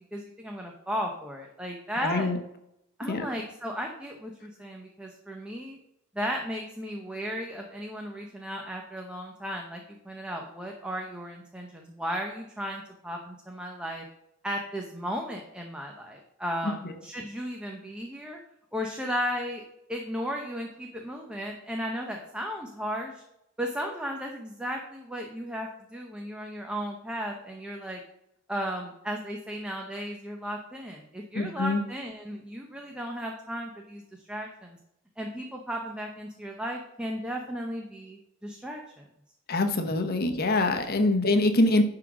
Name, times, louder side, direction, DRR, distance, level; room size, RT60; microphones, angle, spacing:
voice 1, 0.1-2.3 3.0-5.8 6.1-14.0 14.4-18.4 18.7-23.2 23.6-28.0 28.5-34.0 34.3-34.8 35.2-39.0, equal, 5° right, 1 dB, 0.8 m, -35 dB
voice 2, 2.0-2.4 3.1-3.3 16.6-16.9 31.3-31.8 39.5-41.8, left 2 dB, 50° left, 6 dB, 1.0 m, -24 dB
11.0 x 3.9 x 6.1 m, 0.81 s
head